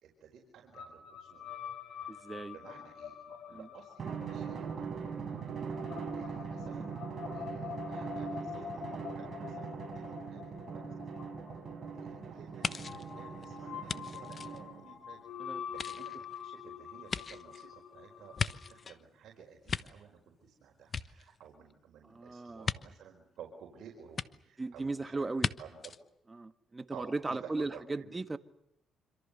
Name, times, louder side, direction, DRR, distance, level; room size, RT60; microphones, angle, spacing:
voice 1, 0.0-1.5 1.9-5.0 6.1-6.9 7.3-10.8 11.9-25.3 25.6-25.8 26.9-28.2, right 7 dB, 70° right, 0 dB, 4.9 m, -54 dB
sound 1, 0.7-18.9, left 8 dB, 70° left, 3.3 m, -46 dB
voice 2, 2.1-2.6 3.5-3.7 15.4-15.6 22.0-22.7 24.6-25.5 26.3-28.4, right 3 dB, 20° right, 10 dB, 1.5 m, -37 dB
Drum, 4.0-15.0, right 6 dB, 45° right, 6.1 m, -41 dB
sound 2, 12.6-15.2 15.7-19.0 19.4-20.5 20.8-21.7 22.6-22.8 24.2-24.3 25.4-25.5 25.8-26.0, left 5 dB, 40° left, 1.1 m, -38 dB
26.5 x 26.0 x 6.9 m, 0.77 s
cardioid pair, 90°, 0 cm